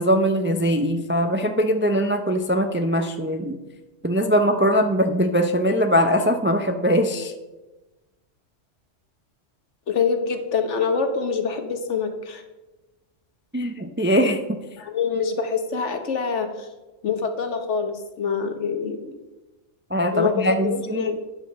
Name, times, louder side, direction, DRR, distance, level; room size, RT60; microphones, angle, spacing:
voice 1, 0.0-3.6 4.0-7.3 13.5-14.4 19.9-21.2, equal, 15° right, 5 dB, 0.4 m, -21 dB
voice 2, 9.9-12.4 14.8-16.7 17.0-19.1 20.1-21.2, left 5 dB, 70° left, 6 dB, 1.4 m, -25 dB
10.0 x 5.2 x 6.5 m, 1.1 s
omnidirectional pair, 1.2 m